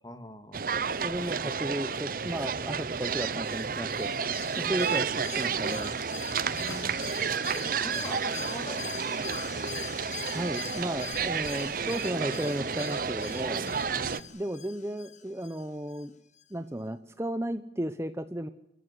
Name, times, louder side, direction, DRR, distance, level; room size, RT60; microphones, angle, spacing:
voice 1, 0.0-0.8 4.6-4.9 6.3-7.0 7.5-9.7 13.6-14.4, left 1 dB, 20° left, 9 dB, 2.1 m, -44 dB
sound 1, 0.5-14.2, right 6 dB, 50° right, 0.8 m, -31 dB
voice 2, 1.0-4.1 4.6-6.0 10.3-13.6 14.3-16.1 16.5-18.5, right 1 dB, 15° right, 10 dB, 0.8 m, -34 dB
sound 2, 2.0-3.2 4.3-5.1 6.7-7.0, left 4 dB, 85° left, 2.8 m, -50 dB
Alarm, 2.6-16.1 16.4-16.5, left 8 dB, 40° left, 1.4 m, -44 dB
28.0 x 14.5 x 9.6 m, 0.81 s
head